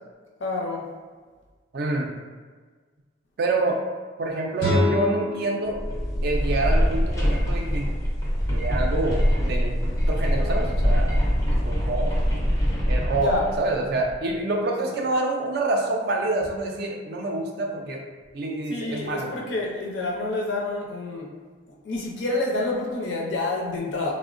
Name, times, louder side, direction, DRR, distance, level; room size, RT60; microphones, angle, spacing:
voice 1, 0.4-0.9 13.2-13.4 14.6-14.7 18.7-21.3 21.8-24.1, left 2 dB, 65° left, -2 dB, 0.5 m, -28 dB
voice 2, 1.7-2.1 3.4-3.8 4.2-5.8 6.2-7.9 8.5-11.2 11.6-12.2 12.9-13.3 13.6-18.0 18.3-19.3, right 2 dB, 50° right, 1 dB, 0.3 m, -27 dB
sound 1, 4.6-7.6, left 2 dB, 85° left, 1.0 m, -28 dB
sound 2, 5.7-14.2, equal, 15° left, 0.4 m, -23 dB
3.4 x 2.0 x 2.5 m, 1.5 s
head